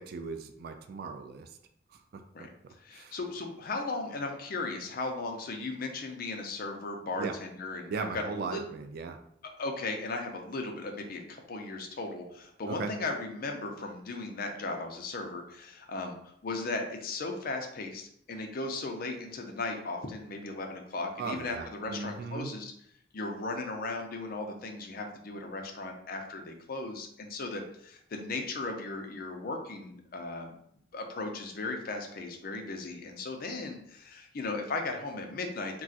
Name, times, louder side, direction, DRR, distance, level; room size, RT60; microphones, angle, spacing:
voice 1, 0.0-1.5 1.9-2.5 2.9-3.2 7.2-7.4 7.9-9.2 12.7-12.9 21.2-22.5, right 4 dB, 55° right, 7 dB, 0.3 m, -38 dB
voice 2, 2.8-8.6 9.4-16.2 16.4-22.7 23.1-30.5 30.9-35.8, left 3 dB, 55° left, 3 dB, 0.5 m, -36 dB
2.4 x 2.3 x 3.9 m, 0.69 s
head